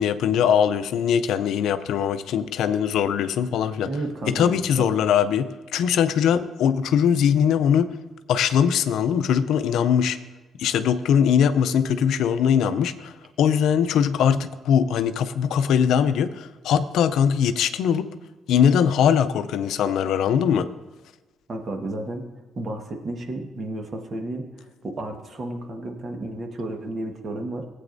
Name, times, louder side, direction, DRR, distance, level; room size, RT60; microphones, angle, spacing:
voice 1, 0.0-3.9 4.3-7.9 8.3-10.2 10.6-18.1 18.5-20.7, left 8 dB, 80° left, 11 dB, 0.5 m, -21 dB
voice 2, 3.8-4.9 21.5-22.2 22.5-27.6, right 2 dB, 45° right, 3 dB, 1.4 m, -32 dB
16.0 x 8.3 x 2.6 m, 1.2 s
cardioid pair, 90°, 0 cm